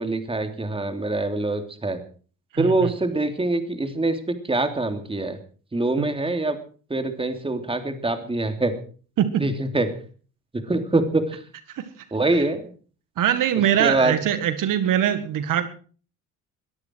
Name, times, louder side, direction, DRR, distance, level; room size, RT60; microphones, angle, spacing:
voice 1, 0.0-2.0 2.6-5.4 5.7-6.6 6.9-8.8 9.4-10.0 10.5-11.4 12.1-12.7 13.8-14.2, right 2 dB, 15° right, 7 dB, 3.2 m, -24 dB
voice 2, 2.5-2.9 6.0-6.1 9.2-9.4 11.7-12.0 13.2-15.7, right 10 dB, 65° right, 10 dB, 1.9 m, -22 dB
21.5 x 14.0 x 4.7 m, 0.42 s
cardioid pair, 90°, 34 cm